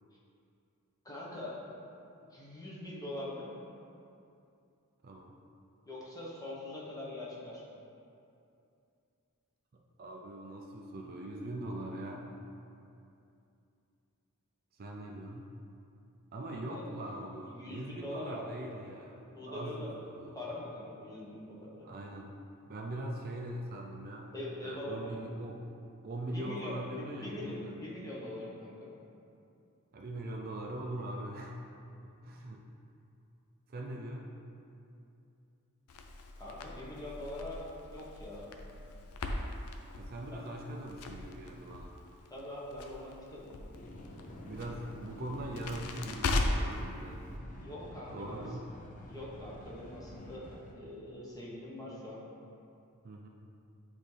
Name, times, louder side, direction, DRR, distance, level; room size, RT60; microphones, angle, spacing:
voice 1, 1.0-1.6 2.3-3.5 5.8-7.8 16.5-16.9 17.5-18.4 19.1-19.9 20.3-21.9 24.3-25.2 26.2-29.0 36.4-38.5 40.3-40.4 42.3-43.6 47.6-48.5 49.1-52.2, left 1 dB, 15° left, -6 dB, 1.1 m, -43 dB
voice 2, 5.0-5.4 9.7-12.3 14.8-15.5 16.3-19.2 19.5-20.4 21.8-22.4 22.7-24.3 24.6-25.6 26.0-27.7 29.9-31.6 32.0-32.6 33.7-34.3 40.0-42.0 44.4-47.2 48.1-48.7 53.0-53.3, right 1 dB, 45° right, 0 dB, 0.5 m, -41 dB
Crackle, 35.9-46.8, left 2 dB, 80° left, 0.5 m, -38 dB
sound 1, 43.7-50.7, left 1 dB, 35° left, 0.6 m, -49 dB
9.0 x 3.6 x 3.3 m, 2.6 s
head